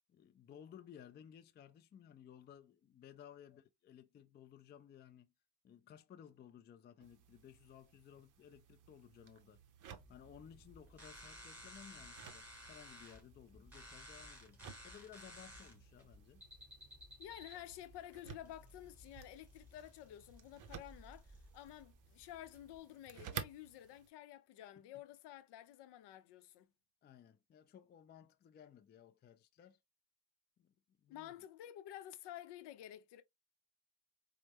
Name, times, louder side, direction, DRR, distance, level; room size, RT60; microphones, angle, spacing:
voice 1, 0.1-5.3 5.6-9.6 10.1-16.4 27.0-29.8 30.6-30.7 31.0-31.3, left 9 dB, 25° left, 0.4 m, -58 dB
sound 1, 7.0-24.1, right 8 dB, 40° right, 0.7 m, -55 dB
sound 2, 9.9-22.8, equal, 5° right, 2.3 m, -57 dB
voice 2, 17.2-26.7 31.1-33.2, left 12 dB, 60° left, 0.7 m, -52 dB
4.4 x 2.2 x 2.8 m
supercardioid pair, 75°, 47 cm